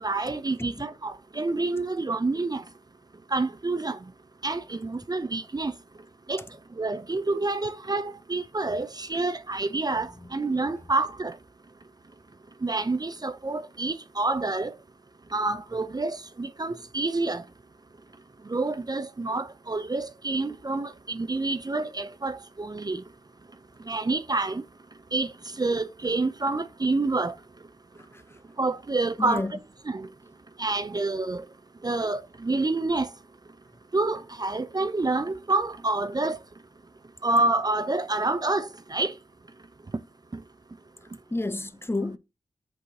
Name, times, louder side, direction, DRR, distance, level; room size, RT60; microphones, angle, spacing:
voice 1, 0.0-2.6 3.3-4.0 4.4-5.7 6.3-6.4 6.8-11.3 12.6-14.7 15.3-17.4 18.5-23.0 23.9-24.6 25.1-25.3 25.6-27.3 28.6-29.4 29.9-30.1 30.6-31.4 31.8-33.1 33.9-36.4 37.2-39.1, right 2 dB, 30° right, 0.5 m, -28 dB
voice 2, 29.2-29.5 41.3-42.2, left 2 dB, 20° left, 0.6 m, -30 dB
8.1 x 4.7 x 2.7 m
wide cardioid pair, 70°, 12 cm